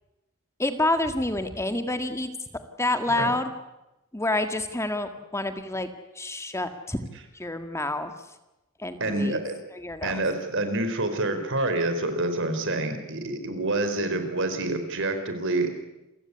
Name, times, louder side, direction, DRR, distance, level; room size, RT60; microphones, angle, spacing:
voice 1, 0.6-2.3 2.8-3.5 4.1-5.9 6.2-7.0 7.3-8.1 8.8-9.4 9.7-10.2, left 2 dB, 15° left, 8 dB, 1.8 m, -28 dB
voice 2, 9.0-9.6 10.0-15.7, right 2 dB, 60° right, 8 dB, 4.4 m, -27 dB
28.5 x 16.0 x 9.8 m, 0.96 s
head